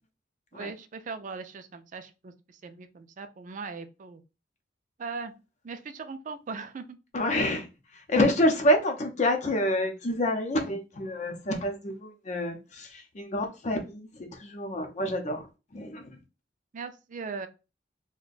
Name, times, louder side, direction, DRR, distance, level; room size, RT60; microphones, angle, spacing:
voice 1, 0.5-4.2 5.0-5.3 5.6-7.0 16.7-17.5, right 4 dB, 45° right, 0.4 m, -39 dB
voice 2, 7.1-7.7 8.1-15.5 15.7-16.2, left 1 dB, 40° left, 0.6 m, -27 dB
2.5 x 2.2 x 3.8 m
head